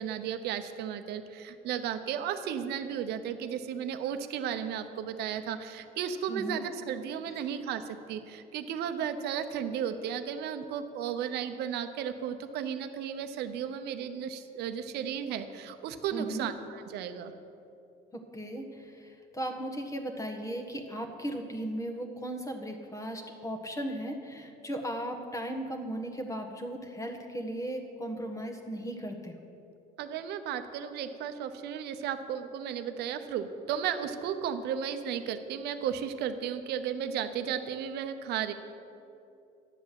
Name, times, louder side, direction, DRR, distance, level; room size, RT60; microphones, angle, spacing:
voice 1, 0.0-17.3 30.0-38.5, right 8 dB, 75° right, 9 dB, 0.8 m, -34 dB
voice 2, 6.3-6.6 16.1-16.5 18.1-29.3, right 1 dB, 20° left, 4 dB, 1.4 m, -37 dB
11.0 x 7.4 x 7.6 m, 2.7 s
cardioid pair, 105°, 17 cm